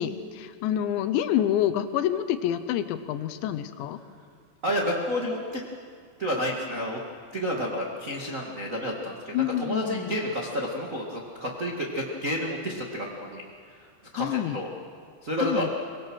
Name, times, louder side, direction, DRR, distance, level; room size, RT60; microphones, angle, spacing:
voice 1, 0.0-4.0 9.3-10.2 14.1-14.6 15.4-15.7, left 11 dB, 85° left, 11 dB, 3.2 m, -27 dB
voice 2, 4.6-5.6 6.2-7.0 7.3-13.4 13.8-13.9 14.1-14.3 14.5-14.7 15.2-15.7, equal, 60° right, -2 dB, 0.8 m, -30 dB
24.0 x 21.5 x 6.3 m, 2.1 s
omnidirectional pair, 5.0 m